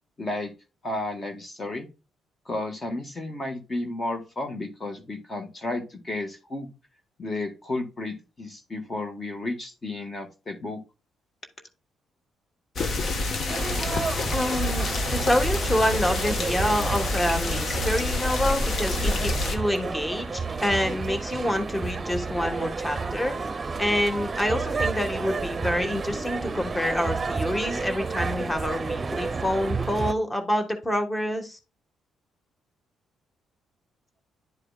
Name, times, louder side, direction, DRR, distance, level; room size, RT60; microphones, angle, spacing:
voice 1, 0.2-0.5 0.8-1.9 2.4-6.7 7.2-10.8, left 2 dB, 30° left, 5 dB, 1.6 m, -32 dB
sound 1, 12.8-19.6, left 2 dB, 55° left, 1.4 m, -27 dB
sound 2, 13.5-30.1, right 4 dB, 30° right, 0.8 m, -31 dB
voice 2, 13.7-31.6, equal, 15° left, 6 dB, 1.6 m, -27 dB
11.0 x 4.8 x 2.4 m, 0.29 s
cardioid pair, 90°, 0 cm